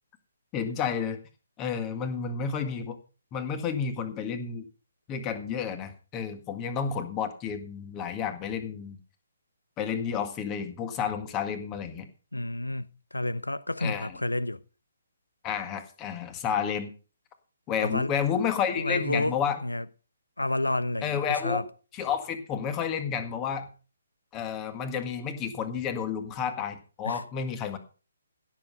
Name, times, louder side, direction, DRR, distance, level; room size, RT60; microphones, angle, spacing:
voice 1, 0.5-1.2 1.6-3.0 3.3-4.7 5.1-9.0 9.8-12.1 13.8-14.2 15.4-16.9 17.7-19.6 21.0-21.6 21.9-23.7 24.3-27.8, left 7 dB, 20° left, 1.8 m, -31 dB
voice 2, 12.3-14.6 17.8-18.1 18.8-19.3 19.6-19.8 20.4-21.7 27.0-27.2, left 2 dB, 80° left, 0.9 m, -30 dB
16.5 x 7.4 x 5.4 m
figure-of-eight pair, 135°, 0 cm